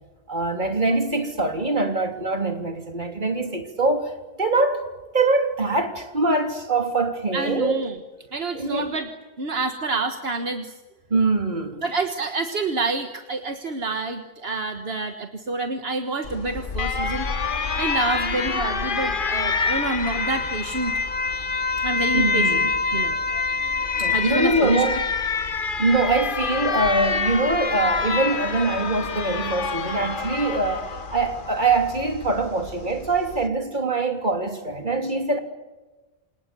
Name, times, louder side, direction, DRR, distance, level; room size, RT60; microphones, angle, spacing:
voice 1, 0.3-4.1 4.4-4.8 5.1-7.8 8.5-8.9 11.1-11.8 22.1-22.7 24.0-25.0 25.8-35.4, right 3 dB, 50° right, 3.4 m, -23 dB
voice 2, 7.3-8.0 8.3-9.1 9.4-10.7 11.8-17.3 17.8-20.9 21.8-22.6 22.9-24.8, right 3 dB, 70° right, 1.8 m, -28 dB
Alarm, 16.2-33.5, left 4 dB, 55° left, 1.4 m, -26 dB
28.5 x 27.0 x 6.9 m
omnidirectional pair, 1.1 m